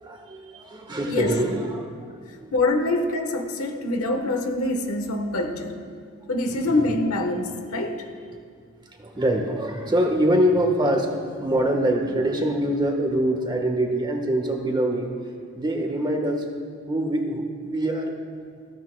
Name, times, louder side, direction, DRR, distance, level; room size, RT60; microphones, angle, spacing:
voice 1, 0.0-1.8 2.4-2.5 6.6-6.8 9.0-15.1 15.5-16.4 16.9-18.1, right 1 dB, 20° right, 2 dB, 1.3 m, -24 dB
voice 2, 1.1-1.4 2.5-5.8 6.3-8.1, left 2 dB, 75° left, 4 dB, 1.2 m, -25 dB
20.0 x 15.0 x 2.2 m, 2.1 s
head